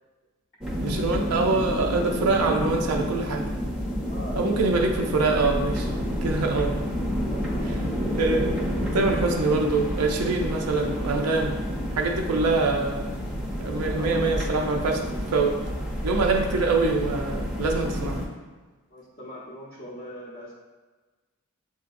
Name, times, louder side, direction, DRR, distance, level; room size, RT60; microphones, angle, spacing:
sound 1, 0.6-18.3, equal, 5° right, 0.6 m, -29 dB
voice 1, 0.8-3.5 4.4-5.9 6.2-6.7 8.1-8.5 8.9-11.6 12.0-13.0 13.6-15.0 15.3-15.6 16.0-18.2, right 3 dB, 85° right, 1 dB, 0.5 m, -24 dB
voice 2, 4.1-4.6 7.3-7.8 13.6-14.2 16.1-16.3 18.9-20.5, equal, 35° left, -8 dB, 0.7 m, -41 dB
7.4 x 2.7 x 2.5 m, 1.3 s
head